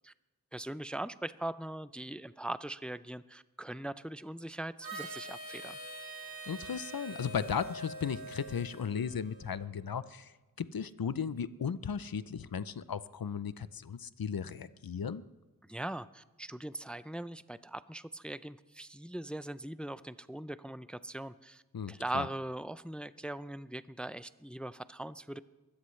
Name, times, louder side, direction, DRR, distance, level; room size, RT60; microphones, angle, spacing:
voice 1, 0.5-5.8 15.6-21.6 21.9-25.4, right 1 dB, 5° left, 14 dB, 0.4 m, -40 dB
Harmonica, 4.8-9.5, right 2 dB, 85° right, 5.0 m, -45 dB
voice 2, 6.4-10.3 10.6-15.2 21.7-22.3, left 7 dB, 90° left, 15 dB, 0.6 m, -36 dB
23.0 x 13.0 x 3.2 m, 1.2 s
wide cardioid pair, 40°, 34 cm